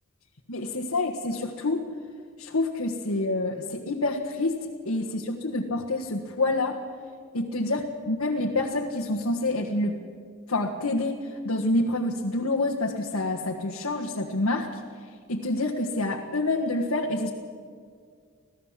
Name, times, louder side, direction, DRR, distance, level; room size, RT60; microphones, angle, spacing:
voice 1, 0.5-1.8 2.4-4.6 4.8-6.8 7.3-9.9 10.5-11.2 11.4-14.7 15.3-17.3, left 2 dB, 85° left, 1 dB, 1.6 m, -27 dB
26.0 x 16.5 x 7.5 m, 2.1 s
head